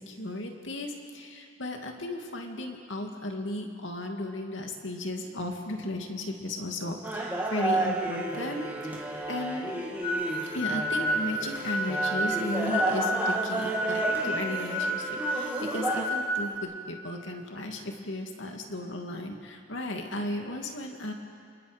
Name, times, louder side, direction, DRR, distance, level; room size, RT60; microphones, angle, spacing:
voice 1, 0.0-9.7 10.5-21.1, left 1 dB, 80° left, 3 dB, 2.5 m, -35 dB
sound 1, 7.0-16.0, right 1 dB, 10° right, 2.7 m, -32 dB
sound 2, 10.0-16.5, equal, 30° left, 3.7 m, -31 dB
28.5 x 28.0 x 5.3 m, 2.3 s
head